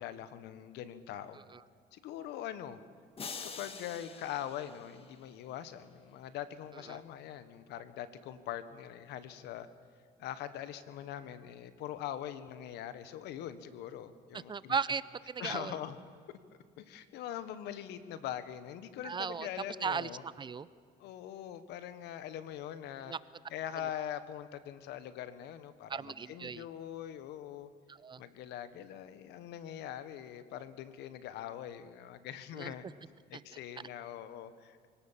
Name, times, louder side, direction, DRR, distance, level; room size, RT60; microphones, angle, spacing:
voice 1, 0.0-1.4 1.9-2.8 3.4-9.7 10.2-14.8 15.4-16.0 16.3-16.4 16.8-20.2 21.0-23.1 23.5-27.7 28.2-32.8 33.3-34.9, left 11 dB, 85° left, 13 dB, 1.4 m, -42 dB
sound 1, 3.2-5.5, left 5 dB, 35° left, 1.7 m, -46 dB
voice 2, 14.3-15.7 19.0-19.5 19.8-20.7 23.1-23.2 25.9-26.6 27.9-28.2 32.5-32.7 33.3-33.4, right 5 dB, 30° right, 17 dB, 0.6 m, -36 dB
24.5 x 18.0 x 7.4 m, 2.1 s
cardioid pair, 110°, 17 cm